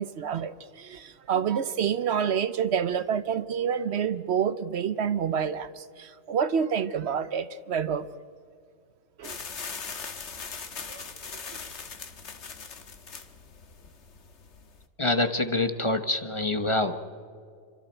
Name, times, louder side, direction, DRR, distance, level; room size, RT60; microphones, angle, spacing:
voice 1, 0.0-8.1 9.2-9.4 10.9-11.0, right 7 dB, 70° right, 13 dB, 1.0 m, -28 dB
sound 1, 9.2-14.8, left 5 dB, 80° left, 1.6 m, -40 dB
voice 2, 15.0-16.9, left 2 dB, 30° left, 8 dB, 1.0 m, -26 dB
29.0 x 25.0 x 4.5 m, 2.2 s
omnidirectional pair, 1.2 m